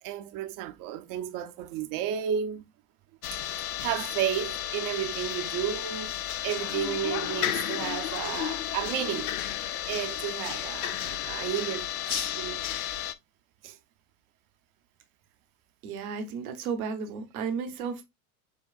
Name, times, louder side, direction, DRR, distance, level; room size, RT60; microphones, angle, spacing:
voice 1, 0.0-2.6 3.3-6.1 6.4-9.3 9.9-12.6 13.6-13.8, right 10 dB, 50° right, 0.7 m, -33 dB
sound 1, 3.2-13.1, left 11 dB, 85° left, 0.6 m, -33 dB
voice 2, 15.8-18.0, right 6 dB, 75° right, 1.1 m, -33 dB
7.1 x 2.4 x 2.4 m
hypercardioid pair, 80°, 43 cm